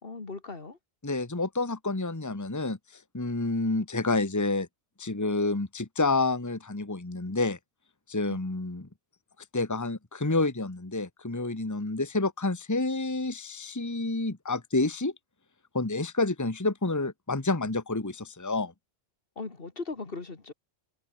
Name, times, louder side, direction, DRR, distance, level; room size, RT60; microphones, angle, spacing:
voice 1, 0.0-0.8 8.3-8.4 19.4-20.5, left 3 dB, 60° left, 2.2 m, -38 dB
voice 2, 1.0-4.7 5.0-7.6 8.1-8.9 9.5-15.1 15.7-18.7, left 2 dB, 15° left, 1.4 m, -29 dB
omnidirectional pair, 1.1 m